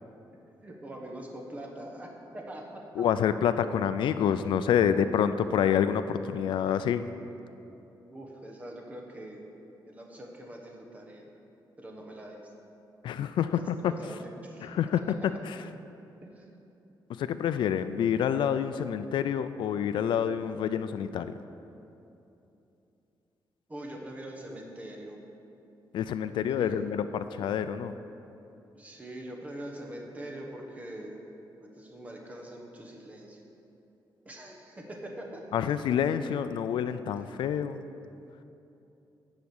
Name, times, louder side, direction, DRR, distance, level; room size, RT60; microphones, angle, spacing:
voice 1, 0.6-3.2 8.1-9.5 9.8-11.3 11.8-12.4 13.5-14.8 16.2-16.5 23.7-25.2 26.6-26.8 28.7-31.3 31.6-33.4 34.2-35.4 37.3-37.4, right 1 dB, 20° right, 0 dB, 1.0 m, -43 dB
voice 2, 3.0-7.0 13.0-13.9 14.6-15.6 17.1-21.4 25.9-27.9 35.5-37.8, left 8 dB, 80° left, 11 dB, 0.4 m, -27 dB
10.5 x 4.9 x 7.1 m, 2.9 s
wide cardioid pair, 180°, 8 cm